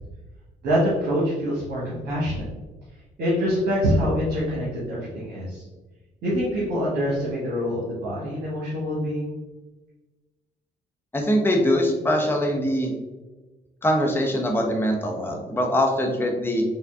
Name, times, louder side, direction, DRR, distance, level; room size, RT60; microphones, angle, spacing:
voice 1, 0.6-2.4 3.2-5.6 6.2-9.3, equal, 55° right, -6 dB, 1.2 m, -25 dB
voice 2, 11.1-12.9 13.8-16.6, equal, 10° left, 0 dB, 0.9 m, -22 dB
5.7 x 2.3 x 3.5 m, 1.2 s
figure-of-eight pair, 45°, 21 cm